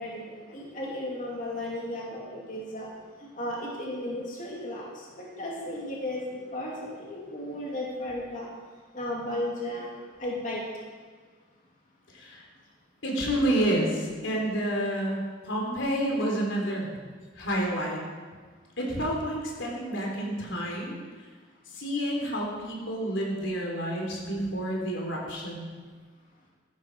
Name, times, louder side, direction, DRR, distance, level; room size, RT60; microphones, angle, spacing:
voice 1, 0.0-2.9 3.2-8.5 8.9-10.6, left 1 dB, 45° left, -4 dB, 2.9 m, -35 dB
voice 2, 13.0-16.9 17.4-18.0 18.8-21.0 21.7-25.7, right 1 dB, 85° left, -1 dB, 3.5 m, -29 dB
14.5 x 13.0 x 4.7 m, 1.5 s
head